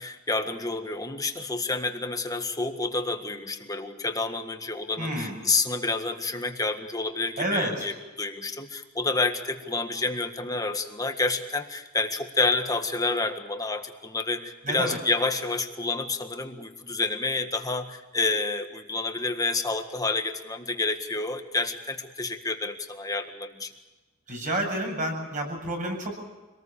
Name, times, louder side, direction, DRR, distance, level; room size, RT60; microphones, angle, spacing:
voice 1, 0.0-23.7, left 3 dB, 20° left, 6 dB, 1.7 m, -29 dB
voice 2, 5.0-5.4 7.4-7.9 14.6-15.0 24.3-26.2, right 1 dB, 40° right, 2 dB, 7.9 m, -29 dB
26.0 x 19.5 x 7.0 m, 1.2 s
head